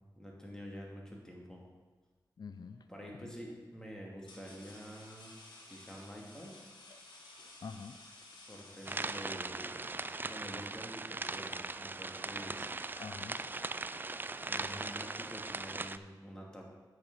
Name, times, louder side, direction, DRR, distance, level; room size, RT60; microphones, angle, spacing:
voice 1, 0.1-1.6 2.9-5.3 5.7-6.6 8.5-12.7 14.5-16.6, equal, 10° left, -2 dB, 2.6 m, -48 dB
voice 2, 2.4-3.3 6.9-7.0 7.4-8.0 8.9-9.0 13.0-13.4, left 5 dB, 60° left, 11 dB, 0.5 m, -47 dB
sound 1, 2.6-2.9 3.7-9.7, left 2 dB, 85° left, 1.7 m, -55 dB
sound 2, 8.8-16.0, right 3 dB, 25° right, 0.4 m, -39 dB
8.7 x 6.4 x 5.5 m, 1.3 s
cardioid pair, 55°, 8 cm